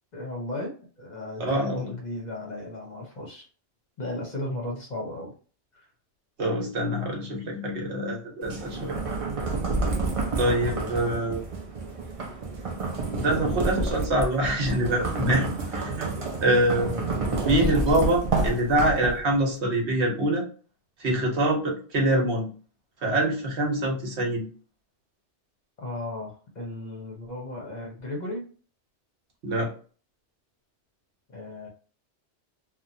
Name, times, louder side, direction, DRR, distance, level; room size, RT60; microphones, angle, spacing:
voice 1, 0.1-3.5 4.0-5.3 5.7-5.9 10.4-10.9 16.8-17.7 25.8-28.4 31.3-31.7, left 1 dB, 45° left, -1 dB, 0.7 m, -36 dB
voice 2, 1.4-1.9 6.4-8.9 9.6-9.7 10.4-11.4 13.1-16.1 16.4-16.9 17.4-20.4 21.0-22.5 23.0-24.5 29.4-29.7, right 1 dB, 70° right, 0 dB, 1.2 m, -25 dB
sound 1, 8.4-19.4, right 3 dB, 45° right, 0.5 m, -29 dB
2.9 x 2.3 x 2.6 m, 0.39 s
omnidirectional pair, 1.2 m